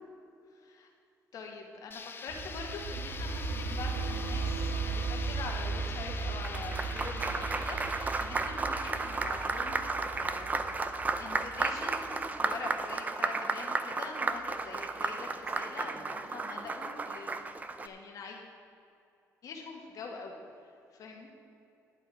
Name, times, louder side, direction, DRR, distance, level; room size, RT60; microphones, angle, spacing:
voice 1, 0.5-0.9 1.3-17.4 17.8-18.5 19.4-20.3 20.9-21.3, left 4 dB, 65° left, 1 dB, 1.9 m, -44 dB
sound 1, 1.9-11.7, left 5 dB, 35° left, 0.7 m, -45 dB
sound 2, 2.3-12.2, right 4 dB, 75° right, 1.5 m, -37 dB
Applause, 6.2-17.9, right 3 dB, 25° right, 0.6 m, -33 dB
11.0 x 8.9 x 4.9 m, 2.6 s
cardioid pair, 110°, 6 cm